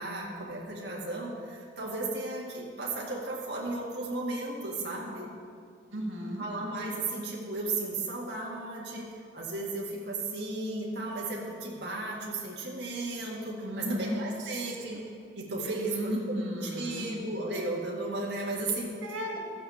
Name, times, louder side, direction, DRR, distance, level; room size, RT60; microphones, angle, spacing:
voice 1, 0.0-5.3 6.4-9.1 9.3-18.9, right 2 dB, 55° right, -4 dB, 2.0 m, -35 dB
voice 2, 5.9-6.4 13.6-14.6 15.8-17.1 19.0-19.4, equal, 90° right, -2 dB, 2.2 m, -34 dB
12.5 x 7.6 x 7.2 m, 2.2 s
head